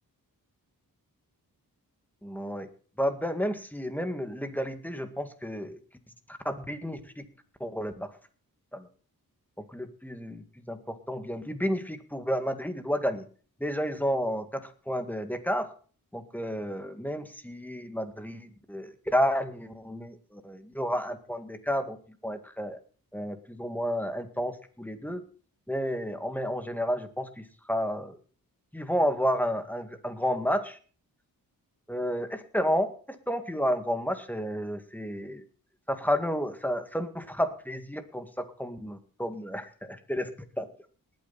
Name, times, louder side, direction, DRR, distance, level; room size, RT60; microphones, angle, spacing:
voice 1, 2.2-2.7 3.0-5.8 6.3-7.2 7.6-8.1 8.7-8.9 9.6-13.2 13.6-15.7 16.1-22.0 22.2-22.8 23.1-25.2 25.7-28.2 28.7-30.8 31.9-35.4 35.9-40.3 40.6-40.7, equal, 5° left, 8 dB, 2.0 m, -31 dB
19.5 x 9.3 x 4.2 m, 0.40 s
cardioid pair, 70°, 37 cm